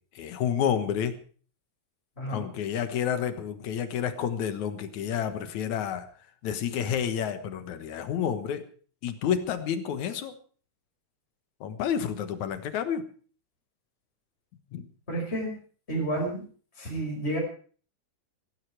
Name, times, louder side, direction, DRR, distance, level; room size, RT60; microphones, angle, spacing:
voice 1, 0.2-1.2 2.3-6.1 6.4-8.6 9.0-10.3 11.6-13.0 14.7-14.9, left 8 dB, 80° left, 10 dB, 2.7 m, -29 dB
voice 2, 15.1-15.5 15.9-16.4 16.8-17.4, right 1 dB, 20° left, -1 dB, 5.5 m, -30 dB
15.5 x 15.5 x 4.8 m, 0.42 s
omnidirectional pair, 3.4 m